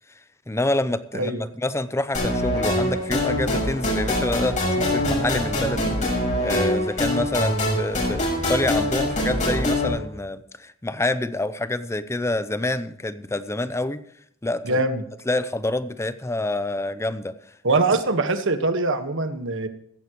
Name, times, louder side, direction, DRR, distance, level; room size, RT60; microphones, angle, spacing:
voice 1, 0.5-14.0 14.4-14.8 15.3-17.3, left 2 dB, 15° left, 13 dB, 0.6 m, -27 dB
sound 1, 2.1-9.9, left 1 dB, 35° left, 6.0 m, -24 dB
voice 2, 14.6-15.0 17.6-19.7, right 2 dB, 60° right, 9 dB, 1.4 m, -23 dB
16.5 x 14.0 x 3.0 m, 0.71 s
head